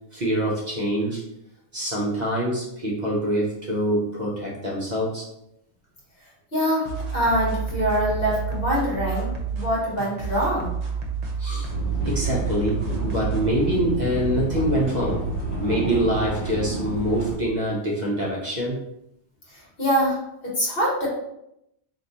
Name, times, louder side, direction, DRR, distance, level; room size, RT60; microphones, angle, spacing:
voice 1, 0.1-1.2 1.7-5.2 11.4-11.7 12.0-15.2 15.6-18.8, right 1 dB, 45° right, -4 dB, 0.8 m, -25 dB
voice 2, 6.5-10.7 19.5-21.1, equal, 55° left, -6 dB, 1.5 m, -24 dB
sound 1, 6.8-13.5, right 5 dB, 80° right, 1.0 m, -30 dB
sound 2, 11.7-17.3, right 1 dB, 90° left, 1.2 m, -29 dB
3.0 x 2.5 x 3.9 m, 0.81 s
omnidirectional pair, 1.1 m